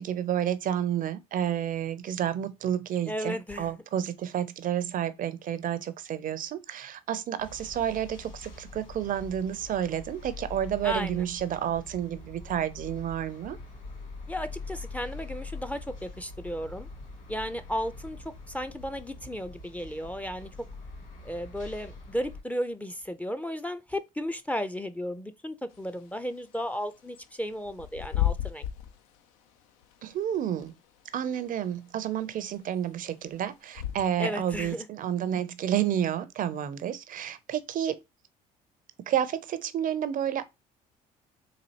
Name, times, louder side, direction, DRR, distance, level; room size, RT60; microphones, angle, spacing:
voice 1, 0.0-13.6 30.0-30.7 31.1-38.0 39.1-40.5, right 10 dB, 50° right, 0.5 m, -30 dB
voice 2, 3.1-3.7 10.8-11.2 14.3-16.9 17.3-18.2 18.5-20.5 21.2-28.6 34.2-34.9, equal, 10° left, 0.4 m, -34 dB
sound 1, 7.4-22.4, left 3 dB, 45° left, 1.6 m, -44 dB
Bird / Wind, 25.7-34.4, left 12 dB, 90° left, 0.5 m, -36 dB
4.0 x 2.6 x 2.7 m
supercardioid pair, 70°, 18 cm